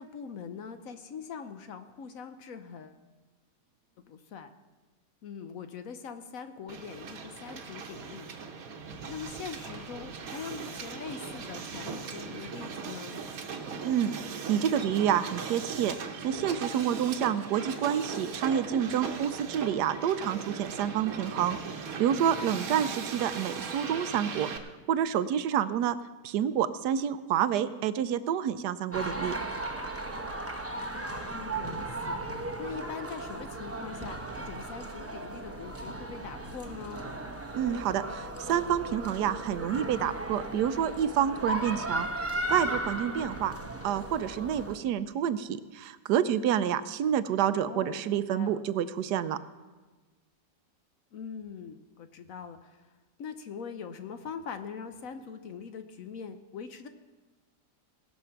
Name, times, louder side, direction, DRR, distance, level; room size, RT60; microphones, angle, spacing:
voice 1, 0.0-3.0 4.0-4.5 5.2-8.3 9.1-13.2 22.5-23.2 31.3-32.2 32.6-37.1 47.4-48.6 51.1-52.8 53.2-56.9, left 6 dB, 60° left, 9 dB, 1.0 m, -42 dB
Hiss, 6.7-24.6, right 5 dB, 60° right, 1.4 m, -39 dB
voice 2, 13.8-16.0 16.2-24.5 24.9-26.0 26.2-29.3 37.5-42.1 42.5-43.5 43.8-49.4, right 9 dB, 80° right, 13 dB, 1.2 m, -28 dB
sound 1, 28.9-44.8, right 1 dB, 15° right, 0.6 m, -36 dB
19.0 x 6.6 x 5.8 m, 1.3 s
omnidirectional pair, 1.8 m